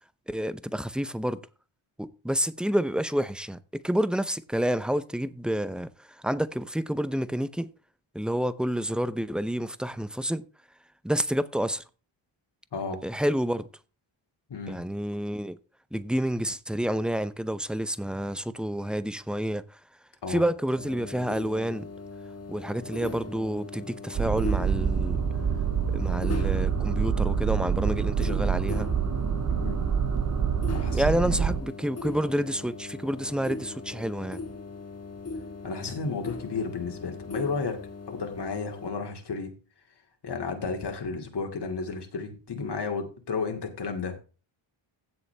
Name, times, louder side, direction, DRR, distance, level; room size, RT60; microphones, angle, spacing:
voice 1, 0.3-1.4 2.0-7.7 8.1-10.4 11.0-11.8 13.0-13.6 14.7-15.6 15.9-19.6 20.3-21.9 22.5-25.2 25.9-28.9 30.9-34.4, equal, ahead, 0.6 m, -29 dB
voice 2, 12.7-13.1 14.5-14.8 20.2-20.4 29.5-29.8 30.7-31.4 35.6-39.6 40.2-44.2, left 4 dB, 55° left, 2.4 m, -33 dB
sound 1, 20.7-38.9, left 3 dB, 30° left, 1.7 m, -40 dB
sound 2, 24.1-31.6, right 7 dB, 35° right, 0.7 m, -26 dB
16.0 x 6.9 x 3.4 m
wide cardioid pair, 140°, 49 cm